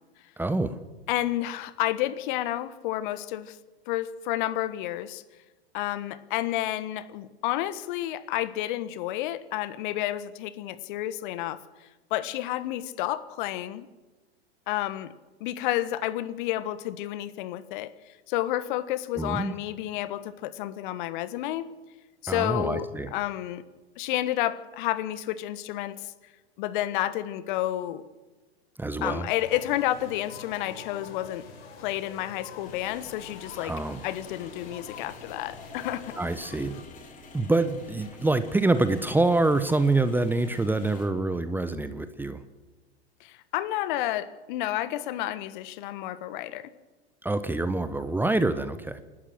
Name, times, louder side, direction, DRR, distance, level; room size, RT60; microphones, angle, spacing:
voice 1, 0.4-0.8 19.1-19.5 22.3-23.1 28.8-29.3 33.6-34.0 36.2-36.7 37.3-42.4 47.2-49.0, right 2 dB, 5° right, 11 dB, 1.0 m, -26 dB
voice 2, 1.1-3.6 3.9-5.2 5.7-11.6 12.1-13.9 14.7-15.1 15.4-17.9 18.3-21.7 22.2-23.6 24.0-26.1 26.6-28.0 29.0-31.5 31.8-33.7 34.0-36.1 43.2-46.7, left 14 dB, 50° left, 15 dB, 1.4 m, -30 dB
sound 1, 29.3-36.8, left 5 dB, 65° left, 4.9 m, -46 dB
sound 2, 32.6-41.1, left 3 dB, 25° left, 3.8 m, -49 dB
28.5 x 12.5 x 7.7 m, 1.2 s
figure-of-eight pair, 100°, 32 cm